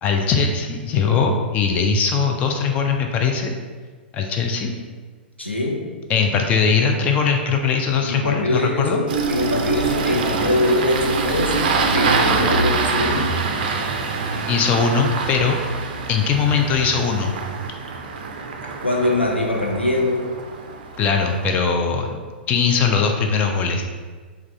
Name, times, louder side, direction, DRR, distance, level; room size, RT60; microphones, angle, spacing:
voice 1, 0.0-3.5 4.1-4.7 6.1-9.0 14.5-15.8 16.1-17.3 21.0-22.2 22.5-23.8, left 5 dB, 25° left, 3 dB, 0.3 m, -20 dB
voice 2, 5.4-5.8 8.0-11.6 11.9-13.3 18.8-20.3, left 1 dB, 90° left, -2 dB, 0.6 m, -22 dB
Engine starting, 9.1-21.5, right 4 dB, 50° right, 0.4 m, -25 dB
3.5 x 2.3 x 3.1 m, 1.5 s
figure-of-eight pair, 105°, 6 cm